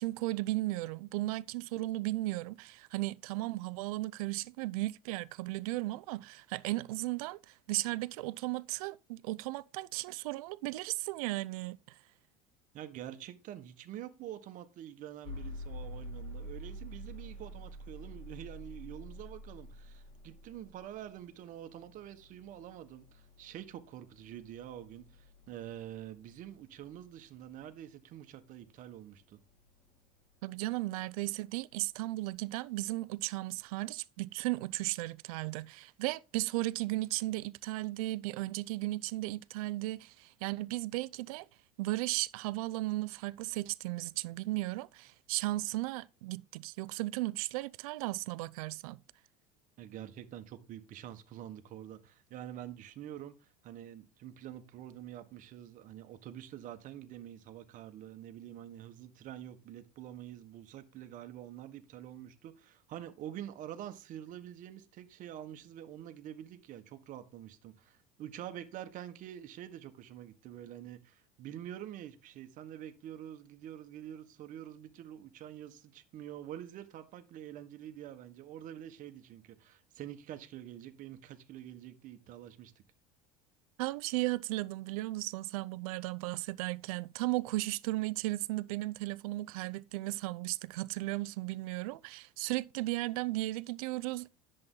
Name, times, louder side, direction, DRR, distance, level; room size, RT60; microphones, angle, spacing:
voice 1, 0.0-11.8 30.4-41.5 41.8-49.0 83.8-94.3, right 19 dB, 85° right, 0.6 m, -35 dB
voice 2, 12.7-29.4 49.8-82.7, right 11 dB, 45° right, 1.4 m, -46 dB
sound 1, 15.2-31.2, equal, 35° left, 2.5 m, -49 dB
10.5 x 7.8 x 3.8 m
supercardioid pair, 135°, 18 cm